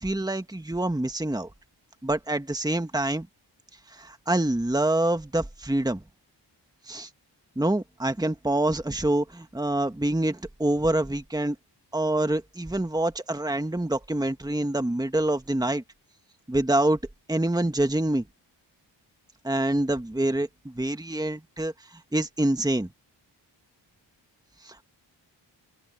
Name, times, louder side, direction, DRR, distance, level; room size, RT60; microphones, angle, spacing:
voice 1, 0.0-1.5 2.0-3.3 3.9-6.0 6.9-7.1 7.6-11.6 11.9-15.8 16.5-17.0 17.3-18.3 19.4-22.9 24.6-24.8, right 1 dB, 10° right, 1.9 m, -26 dB
open air
cardioid pair, 65°, 44 cm